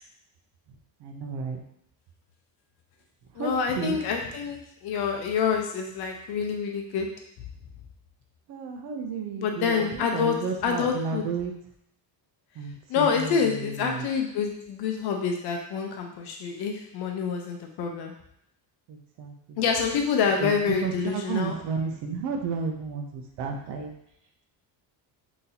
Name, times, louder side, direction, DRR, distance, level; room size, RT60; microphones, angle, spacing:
voice 1, 1.0-1.6 3.3-4.0 8.5-11.5 12.5-14.1 18.9-19.6 20.4-23.9, right 5 dB, 60° right, 3 dB, 0.7 m, -32 dB
voice 2, 3.4-7.1 9.4-10.4 10.6-11.2 12.9-18.1 19.6-21.5, left 6 dB, 55° left, 2 dB, 0.7 m, -27 dB
4.0 x 3.0 x 2.7 m, 0.74 s
cardioid pair, 165°, 46 cm